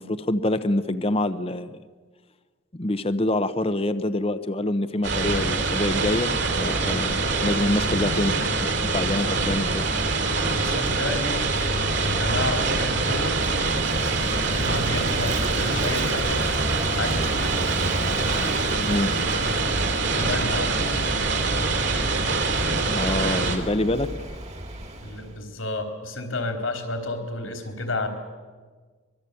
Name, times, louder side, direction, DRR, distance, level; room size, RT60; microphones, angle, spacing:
voice 1, 0.0-1.7 2.7-9.9 18.8-19.1 22.9-24.1, left 1 dB, 30° left, 11 dB, 0.8 m, -26 dB
sound 1, 5.0-23.6, right 3 dB, 60° right, 3.4 m, -24 dB
Vehicle / Engine, 8.8-25.4, right 1 dB, 35° right, 2.1 m, -34 dB
voice 2, 10.6-11.5 12.2-13.4 14.6-16.4 17.0-17.6 20.1-20.8 25.0-28.1, left 2 dB, 80° left, 5 dB, 3.8 m, -30 dB
24.5 x 21.5 x 8.4 m, 1.5 s
head